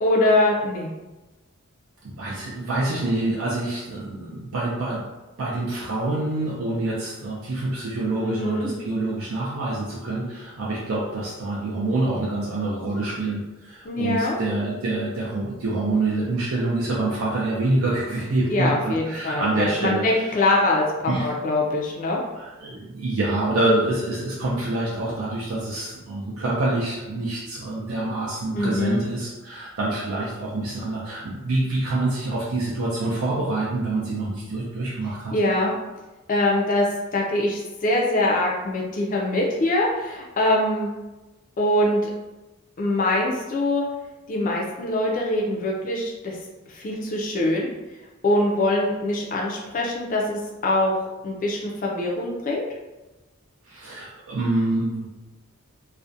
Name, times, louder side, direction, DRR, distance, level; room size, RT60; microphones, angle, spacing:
voice 1, 0.0-0.9 8.2-8.7 13.8-14.4 18.5-22.2 28.5-29.0 35.3-35.7 36.3-36.9 37.1-40.9 41.6-42.1 42.8-43.9 44.3-46.4 46.7-47.7 48.2-52.6, left 1 dB, 40° left, -2 dB, 0.4 m, -23 dB
voice 2, 2.2-5.0 5.4-20.4 21.1-21.3 22.3-35.3 53.6-55.1, right 2 dB, 75° right, -5 dB, 0.4 m, -26 dB
2.4 x 2.1 x 2.6 m, 1.1 s
head